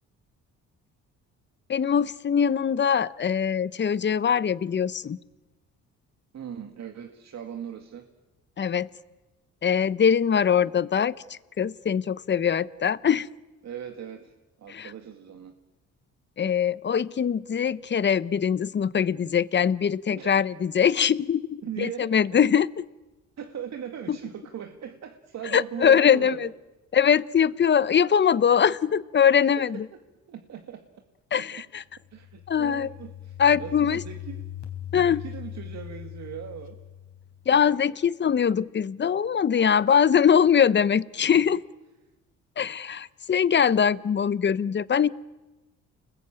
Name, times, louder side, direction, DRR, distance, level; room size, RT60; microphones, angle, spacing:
voice 1, 1.7-5.2 8.6-8.9 9.6-13.3 14.7-14.9 16.4-22.8 24.1-24.2 25.5-26.5 26.9-29.8 31.3-31.8 32.5-32.9 33.4-34.0 34.9-35.2 37.5-41.6 42.6-45.1, left 7 dB, 35° left, 18 dB, 0.9 m, -22 dB
voice 2, 6.3-8.1 13.6-14.3 14.6-15.5 20.1-20.4 21.6-22.4 23.4-26.5 29.4-29.7 30.3-30.8 31.3-31.5 32.1-34.4 34.9-36.8 41.4-41.5, right 8 dB, 60° right, 5 dB, 2.2 m, -39 dB
sound 1, 32.0-37.6, left 11 dB, 65° left, 3.9 m, -40 dB
30.0 x 20.5 x 9.0 m, 1.1 s
cardioid pair, 90°, 30 cm